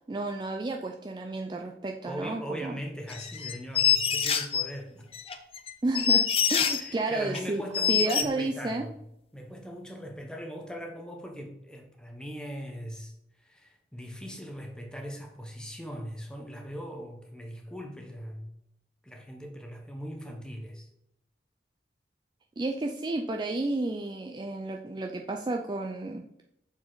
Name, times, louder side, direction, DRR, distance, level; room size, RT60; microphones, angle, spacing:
voice 1, 0.1-2.8 5.8-6.2 6.5-7.6 7.9-8.9 22.6-26.2, right 2 dB, 25° right, 2 dB, 0.3 m, -31 dB
voice 2, 2.0-5.1 6.8-9.0 9.3-13.1 13.4-18.4 19.0-20.9, equal, 5° left, 2 dB, 0.9 m, -40 dB
sound 1, 3.1-4.7 5.1-6.9 7.3-7.4 7.7-8.2, left 8 dB, 35° left, 0.5 m, -25 dB
7.0 x 4.2 x 3.8 m, 0.79 s
head